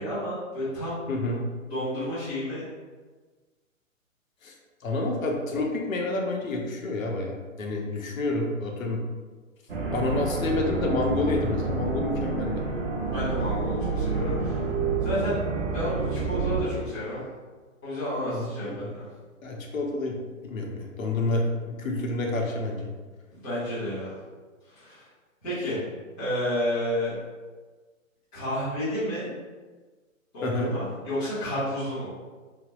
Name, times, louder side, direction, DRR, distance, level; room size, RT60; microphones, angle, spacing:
voice 1, 0.0-1.0 1.7-2.7 13.0-14.6 15.0-15.4 15.7-17.2 17.8-19.1 23.3-24.2 24.7-25.0 25.4-25.8 26.2-27.1 28.3-29.3 30.3-32.1, equal, 5° left, -17 dB, 0.4 m, -31 dB
voice 2, 1.1-1.4 4.4-4.5 4.8-9.0 9.9-12.6 18.2-18.9 19.4-20.2 20.4-22.9 30.4-30.7, left 2 dB, 75° left, 1 dB, 0.8 m, -29 dB
sound 1, 9.7-16.6, right 3 dB, 45° right, 0.6 m, -28 dB
3.3 x 2.1 x 2.5 m, 1.4 s
hypercardioid pair, 140°, 41 cm